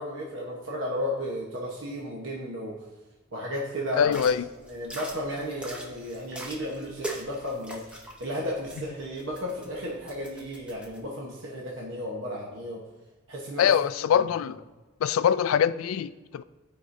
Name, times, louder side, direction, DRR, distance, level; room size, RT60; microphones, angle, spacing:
voice 1, 0.0-2.8 3.3-4.2 4.7-12.8 13.3-13.7 14.2-14.3, equal, 65° right, -3 dB, 1.1 m, -34 dB
voice 2, 4.0-4.5 13.6-14.6 15.0-16.4, left 8 dB, 85° left, 15 dB, 0.3 m, -23 dB
sound 1, 4.0-11.0, right 1 dB, 5° right, 0.7 m, -42 dB
11.5 x 4.9 x 2.6 m, 1.2 s
head